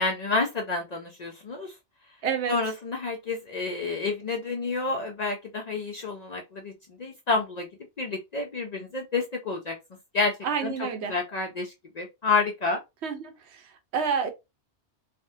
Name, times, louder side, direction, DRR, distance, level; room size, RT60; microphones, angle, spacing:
voice 1, 0.0-1.7 2.5-6.7 7.0-7.7 8.0-9.8 10.1-10.7 11.1-12.8, left 3 dB, 50° left, 0.5 m, -29 dB
voice 2, 2.2-2.6 10.4-11.1 13.0-13.6 13.9-14.3, right 6 dB, 75° right, 0.9 m, -28 dB
3.4 x 2.1 x 2.6 m
omnidirectional pair, 1.2 m